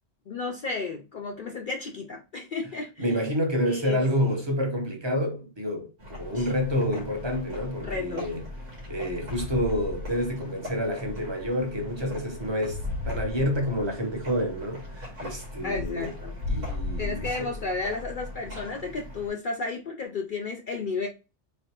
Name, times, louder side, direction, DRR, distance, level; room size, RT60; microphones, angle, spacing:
voice 1, 0.3-3.1 3.7-4.4 6.3-6.5 7.8-8.3 15.6-16.3 17.0-21.1, left 4 dB, 55° left, 0.6 m, -33 dB
voice 2, 3.0-8.4 8.9-16.1 16.5-17.5, equal, 25° right, 0.9 m, -28 dB
sound 1, 6.0-19.3, left 2 dB, 85° right, 1.9 m, -37 dB
3.9 x 3.2 x 2.9 m
omnidirectional pair, 1.2 m